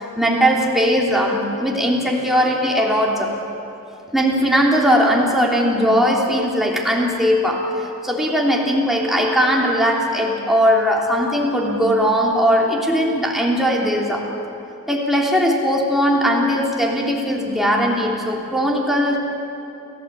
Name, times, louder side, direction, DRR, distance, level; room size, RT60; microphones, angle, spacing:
voice 1, 0.0-3.4 4.1-14.3 14.9-19.2, equal, ahead, -2 dB, 3.2 m, -19 dB
30.0 x 16.0 x 8.3 m, 2.9 s
head